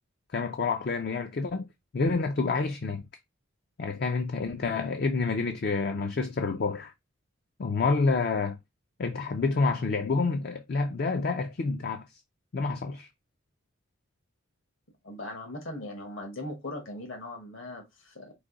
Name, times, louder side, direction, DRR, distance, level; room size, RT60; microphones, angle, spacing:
voice 1, 0.3-1.7 1.9-3.0 3.8-6.9 7.6-8.6 9.0-12.0 12.5-13.1, left 4 dB, 50° left, 0.4 m, -28 dB
voice 2, 15.0-18.3, left 1 dB, 70° left, 1.3 m, -39 dB
4.9 x 2.6 x 3.8 m
head